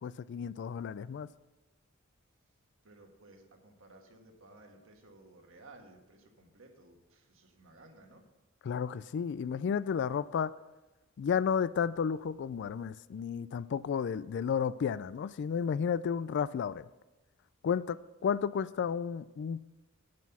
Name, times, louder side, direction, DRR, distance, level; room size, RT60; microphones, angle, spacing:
voice 1, 0.0-1.3 8.6-10.5 11.2-16.9 17.6-19.6, left 7 dB, 55° left, 0.3 m, -32 dB
voice 2, 2.8-8.2, right 2 dB, 65° right, 1.5 m, -57 dB
8.4 x 7.5 x 5.9 m
head